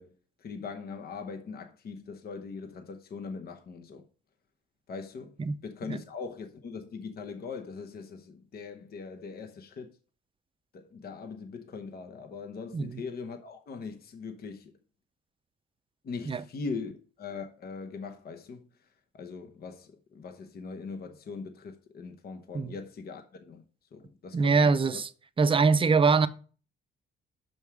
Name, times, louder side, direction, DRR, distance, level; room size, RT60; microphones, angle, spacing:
voice 1, 0.0-4.1 4.9-9.9 10.7-14.8 16.0-16.9 17.2-18.7 19.1-23.6 23.9-25.0, left 5 dB, 50° left, 0.9 m, -41 dB
voice 2, 24.3-25.1 25.4-26.3, right 4 dB, 25° right, 0.6 m, -23 dB
5.9 x 5.4 x 4.6 m
cardioid pair, 90°, 20 cm